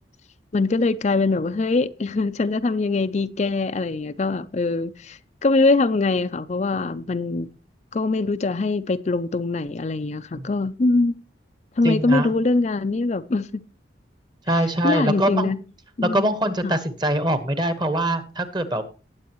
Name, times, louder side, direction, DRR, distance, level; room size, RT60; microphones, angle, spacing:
voice 1, 0.5-7.5 7.9-11.1 11.8-13.6 14.8-15.6 16.0-16.3 16.6-16.7, left 3 dB, 40° left, 0.4 m, -23 dB
voice 2, 11.8-12.3 14.5-15.5 16.0-18.8, right 1 dB, 25° right, 1.2 m, -23 dB
18.5 x 8.2 x 3.0 m
head